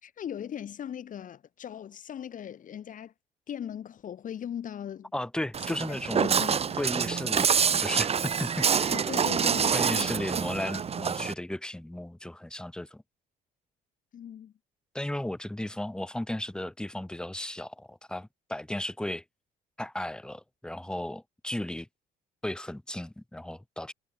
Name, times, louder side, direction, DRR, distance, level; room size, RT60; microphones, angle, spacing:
voice 1, 0.0-3.1 3.5-5.1 5.7-6.8 8.9-10.2 14.1-14.5, left 9 dB, 50° left, 4.7 m, -39 dB
voice 2, 5.1-6.4 6.8-8.9 9.7-13.0 14.9-19.2 19.8-21.9 22.4-23.9, left 1 dB, 5° left, 1.7 m, -35 dB
Walk footsteps, 5.5-11.3, right 7 dB, 35° right, 2.7 m, -26 dB
cardioid pair, 110°, 17 cm